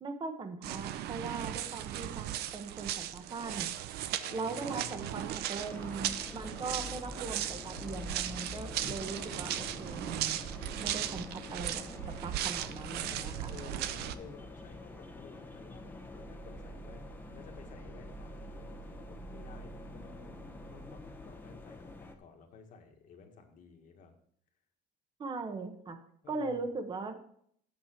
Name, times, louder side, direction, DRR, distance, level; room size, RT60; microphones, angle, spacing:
voice 1, 0.0-3.7 4.3-10.4 10.8-11.8 12.2-13.4 25.2-26.0 26.3-27.2, right 4 dB, 30° right, 7 dB, 1.1 m, -40 dB
sound 1, 0.6-14.2, right 12 dB, 85° right, 0.6 m, -37 dB
voice 2, 3.9-5.4 12.9-15.9 16.1-24.1 26.2-26.6, left 5 dB, 55° left, 3 dB, 1.7 m, -54 dB
sound 2, 5.6-22.1, left 1 dB, 10° left, 0.9 m, -46 dB
sound 3, 8.8-17.9, right 4 dB, 55° right, 1.7 m, -55 dB
8.8 x 7.4 x 4.5 m, 0.65 s
cardioid pair, 165°, 16 cm